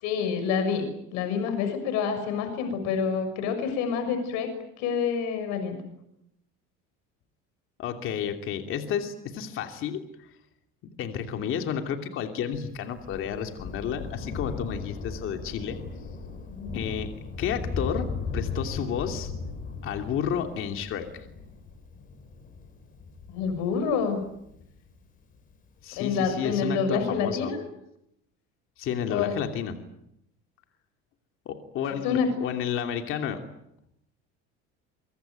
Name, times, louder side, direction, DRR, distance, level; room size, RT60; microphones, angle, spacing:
voice 1, 0.0-4.5 4.8-5.8 16.5-16.8 23.3-24.2 26.0-27.6 29.1-29.3 32.0-32.3, left 6 dB, 65° left, 8 dB, 6.5 m, -27 dB
voice 2, 7.8-10.0 11.0-15.8 16.7-17.1 17.4-18.1 18.3-19.3 19.8-21.1 25.8-27.5 28.8-29.8 31.4-33.4, left 8 dB, 45° left, 5 dB, 2.9 m, -31 dB
Thunder, 12.5-25.4 26.3-26.4, left 4 dB, 30° left, 5.3 m, -37 dB
24.5 x 23.5 x 9.3 m, 0.80 s
cardioid pair, 170°, 29 cm